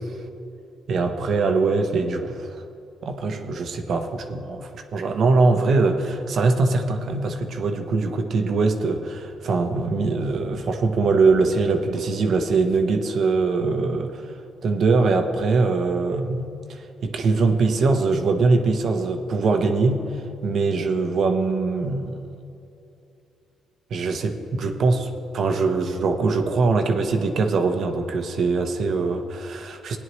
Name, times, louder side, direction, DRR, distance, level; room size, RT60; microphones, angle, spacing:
voice 1, 0.9-2.5 3.0-14.3 14.6-20.1 20.4-22.2 23.9-30.0, right 3 dB, 60° right, 6 dB, 0.9 m, -22 dB
17.0 x 9.9 x 3.2 m, 2.7 s
cardioid pair, 90°, 0 cm